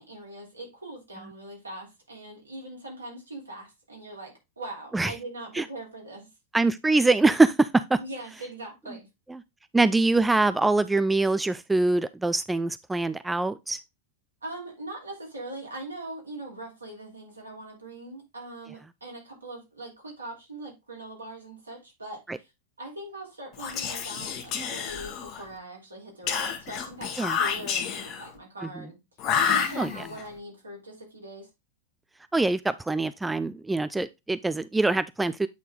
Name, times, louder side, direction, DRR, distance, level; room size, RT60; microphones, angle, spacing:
voice 1, 0.0-6.3 8.0-9.1 14.4-22.5 22.8-29.0 29.5-31.5, right 1 dB, 80° right, 3.2 m, -41 dB
voice 2, 6.5-8.0 9.3-9.4 9.7-13.8 22.3-22.4 27.2-27.4 29.8-29.9 32.3-35.5, right 3 dB, 10° right, 0.3 m, -24 dB
Whispering, 23.5-25.5 26.3-28.3 29.2-30.2, left 7 dB, 35° left, 1.3 m, -29 dB
8.4 x 4.0 x 3.7 m
figure-of-eight pair, 90°, 0 cm